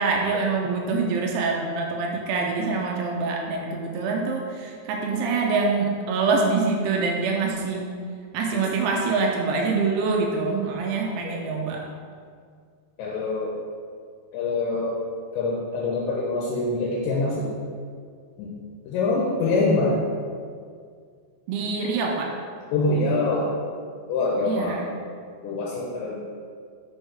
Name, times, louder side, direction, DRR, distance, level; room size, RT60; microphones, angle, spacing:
voice 1, 0.0-7.9 8.3-11.9 21.5-22.3 24.4-24.9, right 4 dB, 80° right, 0 dB, 2.4 m, -25 dB
voice 2, 13.0-13.5 14.3-14.9 15.3-17.5 18.4-18.5 18.9-20.0 22.7-23.5 24.1-24.8 25.4-26.2, left 3 dB, 85° left, -4 dB, 3.1 m, -24 dB
6.3 x 6.1 x 3.3 m, 2.1 s
omnidirectional pair, 5.1 m